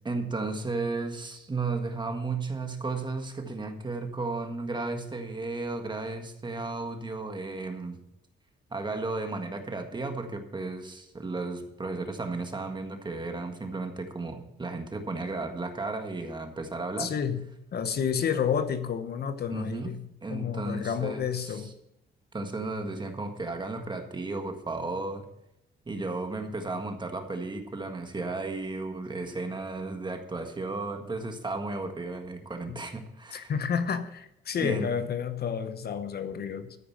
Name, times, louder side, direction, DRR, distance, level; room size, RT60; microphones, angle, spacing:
voice 1, 0.0-8.0 8.7-17.1 19.5-19.9 20.2-21.7 22.3-25.2 25.8-33.5 34.6-34.9, right 3 dB, 20° right, 1.6 m, -34 dB
voice 2, 17.0-17.4 17.7-20.0 20.3-21.7 32.7-32.8 33.3-36.8, left 7 dB, 50° left, 0.9 m, -30 dB
14.0 x 5.0 x 7.2 m
cardioid pair, 90°, 20 cm